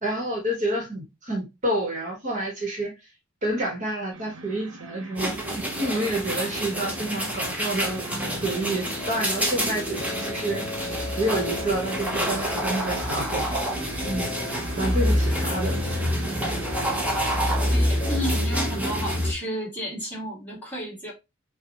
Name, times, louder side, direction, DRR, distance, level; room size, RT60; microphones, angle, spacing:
voice 1, 0.0-2.9 3.4-8.0 8.4-10.6 11.2-13.4 14.0-14.3 14.7-15.8, right 1 dB, 40° right, 1.2 m, -28 dB
sound 1, 4.1-18.2, right 3 dB, 90° right, 0.7 m, -42 dB
sound 2, 5.2-19.3, equal, 5° right, 0.9 m, -27 dB
sound 3, 8.1-18.2, left 3 dB, 25° left, 0.5 m, -38 dB
voice 2, 17.7-21.1, equal, 10° left, 2.2 m, -32 dB
5.7 x 2.2 x 3.0 m
head